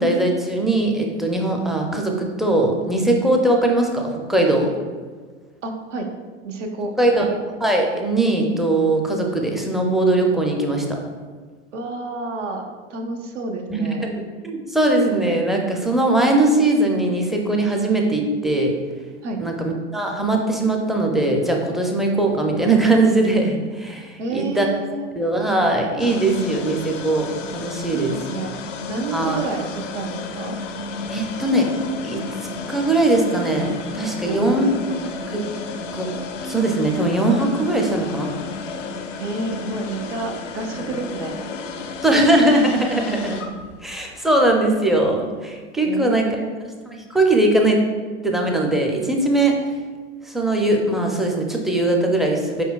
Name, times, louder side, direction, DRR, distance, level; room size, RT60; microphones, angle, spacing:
voice 1, 0.0-4.7 7.0-7.3 7.6-10.8 13.7-18.7 19.4-24.7 25.2-28.1 29.1-29.4 31.1-31.7 32.0-32.2 32.7-34.7 35.3-35.4 35.9-36.1 36.4-38.3 40.8-40.9 42.0-43.4 43.8-46.4 46.9-47.8 48.2-49.5 50.2-52.6, right 2 dB, ahead, 1 dB, 0.4 m, -20 dB
voice 2, 5.6-6.1 6.4-7.3 11.7-12.6 12.9-14.1 19.2-19.4 24.2-25.1 27.9-28.5 28.9-30.6 34.3-34.8 39.2-41.3 42.1-42.3 45.8-46.6, right 2 dB, 75° right, 3 dB, 0.8 m, -29 dB
sound 1, 26.0-45.1, left 4 dB, 85° left, 0.5 m, -33 dB
5.0 x 4.4 x 2.3 m, 1.5 s
hypercardioid pair, 95°, 36 cm